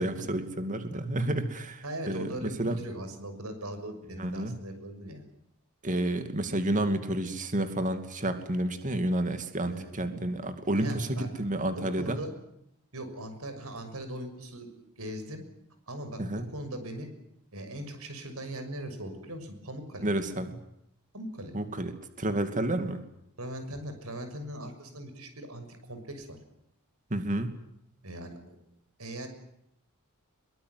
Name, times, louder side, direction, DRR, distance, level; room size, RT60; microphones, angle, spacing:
voice 1, 0.0-2.8 4.2-4.5 5.8-12.2 16.2-16.4 20.0-20.6 21.5-23.0 27.1-27.5, right 1 dB, 35° right, 8 dB, 2.5 m, -30 dB
voice 2, 1.8-5.2 9.7-9.9 10.8-11.3 11.7-12.3 12.9-14.7 15.0-15.4 15.9-17.1 17.5-20.1 21.1-21.5 23.4-26.4 28.0-28.6 29.0-29.3, right 1 dB, 75° right, 8 dB, 6.5 m, -40 dB
23.5 x 23.0 x 9.6 m, 0.78 s
head